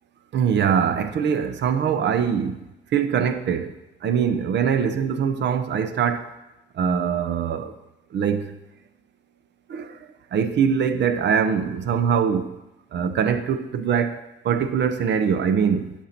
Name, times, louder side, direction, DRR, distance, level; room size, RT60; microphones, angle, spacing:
voice 1, 0.3-2.6 2.9-3.7 4.0-6.3 6.8-7.7 8.1-8.6 9.7-10.0 10.3-12.6 12.9-14.2 14.4-15.9, right 7 dB, 65° right, 0.8 m, -22 dB
11.0 x 4.6 x 5.8 m
cardioid pair, 90°, 20 cm